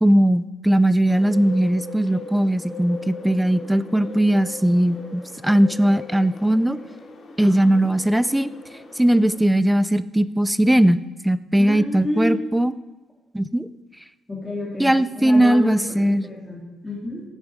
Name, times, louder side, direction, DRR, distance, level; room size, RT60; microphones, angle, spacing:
voice 1, 0.0-6.8 7.4-8.5 9.0-12.7 13.3-13.7 14.8-16.2, right 1 dB, 5° right, 16 dB, 0.5 m, -19 dB
Bird, 1.1-9.4, left 2 dB, 50° left, 3.1 m, -39 dB
voice 2, 7.4-7.9 11.6-12.4 14.3-17.2, left 1 dB, 20° left, -4 dB, 3.7 m, -30 dB
15.5 x 9.3 x 5.2 m, 1.1 s
cardioid pair, 90°, 0 cm